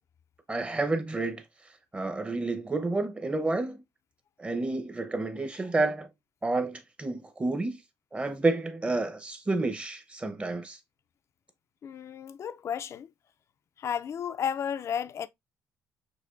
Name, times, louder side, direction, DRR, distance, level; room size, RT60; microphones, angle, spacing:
voice 1, 0.5-1.4 1.9-3.8 4.4-6.1 6.4-7.8 8.1-10.8, right 2 dB, 20° right, 0.8 m, -30 dB
voice 2, 11.8-13.1 13.8-15.3, left 8 dB, 50° left, 0.4 m, -33 dB
6.5 x 2.7 x 2.5 m
cardioid pair, 105°, 6 cm